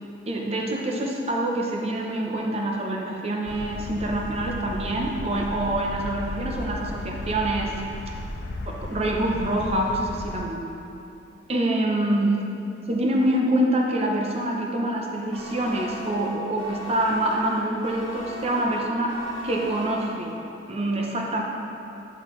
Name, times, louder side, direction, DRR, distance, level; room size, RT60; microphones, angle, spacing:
voice 1, 0.3-7.7 8.7-10.6 11.5-12.3 12.9-19.1 19.4-20.3 20.7-21.4, right 1 dB, 35° right, -1 dB, 0.7 m, -25 dB
sound 1, 3.5-10.4, left 2 dB, 70° left, 0.4 m, -35 dB
sound 2, 15.3-20.6, left 1 dB, 80° right, 1.0 m, -39 dB
9.5 x 3.9 x 3.1 m, 2.7 s
head